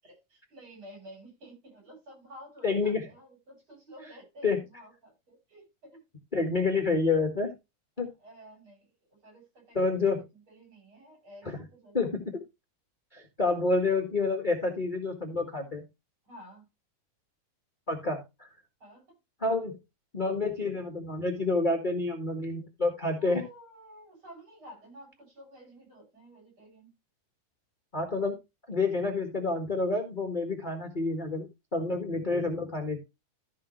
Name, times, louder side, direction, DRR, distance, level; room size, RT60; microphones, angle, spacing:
voice 1, 0.0-6.0 8.2-8.9 9.2-11.9 16.2-16.7 18.8-19.1 19.6-19.7 23.2-26.9, equal, 35° right, 8.3 m, -51 dB
voice 2, 2.6-3.1 4.4-4.6 6.3-7.5 8.0-8.1 9.7-10.2 11.4-11.6 11.9-12.4 13.1-15.8 17.9-18.5 19.4-19.7 20.1-23.4 27.9-28.4 28.7-31.5 31.7-33.0, left 3 dB, 25° left, 0.9 m, -28 dB
15.0 x 5.3 x 3.2 m
omnidirectional pair, 3.8 m